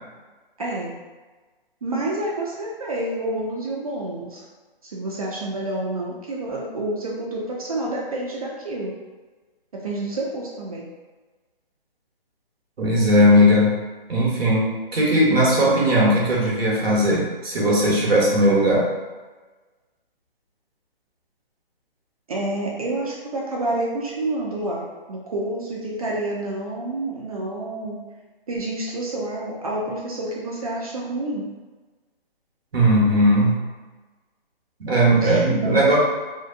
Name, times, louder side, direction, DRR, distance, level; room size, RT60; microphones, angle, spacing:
voice 1, 0.6-0.9 1.8-4.4 4.9-9.0 9.8-10.8 22.3-24.8 25.1-28.0 28.5-31.4 35.2-36.0, right 2 dB, 40° right, -4 dB, 0.5 m, -28 dB
voice 2, 12.8-13.7 14.1-18.9 32.7-33.6 34.8-36.0, equal, 85° right, -4 dB, 0.9 m, -18 dB
2.7 x 2.1 x 2.5 m, 1.3 s
hypercardioid pair, 150°, 30 cm